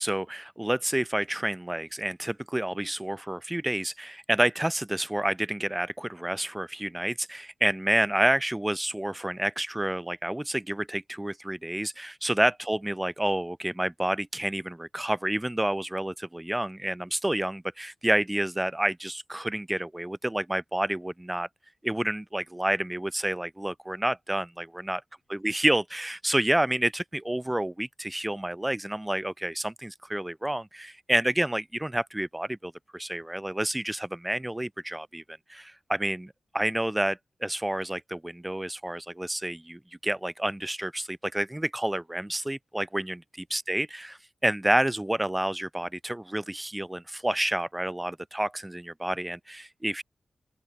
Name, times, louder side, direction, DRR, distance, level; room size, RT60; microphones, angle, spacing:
voice 1, 0.0-21.5 21.8-25.0 25.3-35.2 35.5-43.2 43.5-50.0, right 1 dB, 10° right, 0.4 m, -29 dB
open air
wide cardioid pair, 135°, 0 cm